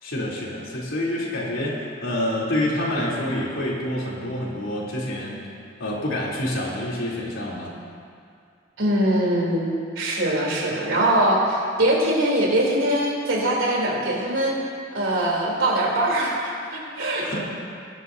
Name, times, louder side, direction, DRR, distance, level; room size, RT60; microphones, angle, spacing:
voice 1, 0.0-5.4 5.8-7.7 17.2-17.4, left 1 dB, 80° left, -5 dB, 3.4 m, -27 dB
voice 2, 8.8-14.6 14.9-17.4, right 1 dB, 85° right, -3 dB, 3.3 m, -22 dB
21.0 x 12.0 x 2.8 m, 2.3 s
head